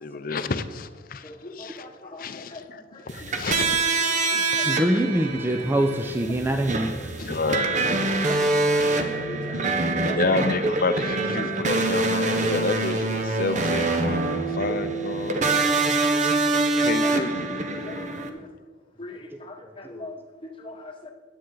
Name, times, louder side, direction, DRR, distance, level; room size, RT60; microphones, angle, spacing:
voice 1, 0.0-1.3 1.6-4.5 7.2-7.8 8.7-9.0 10.1-15.6 16.8-17.6, left 3 dB, 50° left, 12 dB, 0.5 m, -30 dB
voice 2, 1.2-3.8 4.1-4.2 4.5-5.0 8.3-8.4 8.7-10.2 10.4-10.5 17.0-17.5 17.8-18.5 19.0-21.1, left 2 dB, 30° left, 3 dB, 1.1 m, -42 dB
sound 1, 3.1-18.3, right 3 dB, 40° right, 0.8 m, -25 dB
voice 3, 4.6-7.0 9.0-9.2 15.8-17.1 17.7-18.5 19.6-20.0, right 1 dB, 10° right, 4 dB, 0.4 m, -27 dB
10.0 x 8.5 x 3.8 m, 1.3 s
head